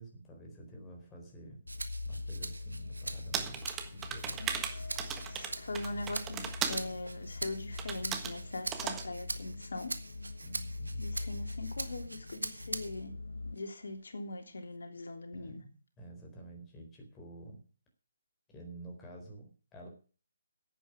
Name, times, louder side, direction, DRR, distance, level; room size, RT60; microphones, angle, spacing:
voice 1, 0.0-1.6 2.0-4.4 10.4-11.0 15.3-17.6 18.5-19.9, right 1 dB, 15° left, 0 dB, 4.1 m, -50 dB
sound 1, 1.7-13.6, left 3 dB, 90° left, 0.8 m, -43 dB
Rattle (instrument), 1.7-13.1 13.6-14.8, right 2 dB, 90° right, 1.4 m, -43 dB
sound 2, 3.3-6.9 7.8-8.4 8.7-9.1, right 8 dB, 15° right, 1.4 m, -37 dB
voice 2, 4.4-5.0 5.3-9.9 11.0-13.1 13.5-15.6, left 2 dB, 70° left, 4 dB, 3.3 m, -41 dB
10.5 x 8.8 x 7.4 m, 0.37 s
figure-of-eight pair, 145°, 0 cm